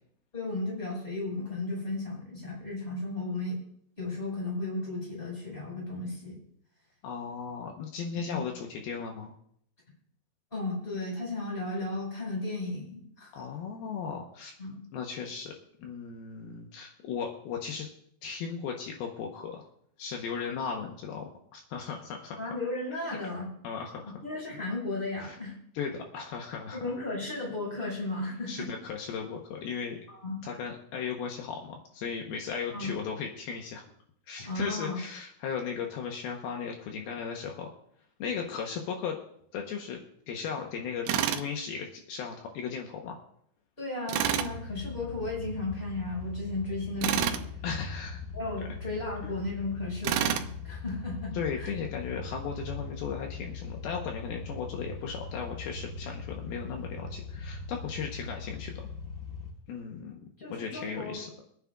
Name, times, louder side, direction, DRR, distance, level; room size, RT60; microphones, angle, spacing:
voice 1, 0.3-3.6 4.0-6.4 8.2-8.4 10.5-13.4 14.6-14.8 22.4-23.5 24.2-25.5 26.7-28.7 30.1-30.4 32.7-32.9 34.4-35.0 43.8-47.4 48.3-51.7 60.4-61.2, left 2 dB, 15° left, -3 dB, 5.5 m, -35 dB
voice 2, 7.0-9.3 13.3-14.5 14.9-15.5 15.8-17.9 18.2-19.7 20.0-22.5 23.6-24.1 25.2-25.4 25.7-26.8 28.5-30.0 30.4-33.8 34.3-37.7 38.2-39.2 39.5-43.2 47.6-48.2 51.3-58.9 59.7-60.2 60.5-61.3, left 6 dB, 75° left, 1 dB, 2.9 m, -36 dB
Tools, 41.1-41.5 44.1-44.5 47.0-47.4 50.0-50.5, right 10 dB, 85° right, 2.7 m, -28 dB
sound 1, 44.2-59.5, left 4 dB, 35° left, 1.4 m, -40 dB
25.0 x 9.5 x 2.4 m, 0.68 s
omnidirectional pair, 4.5 m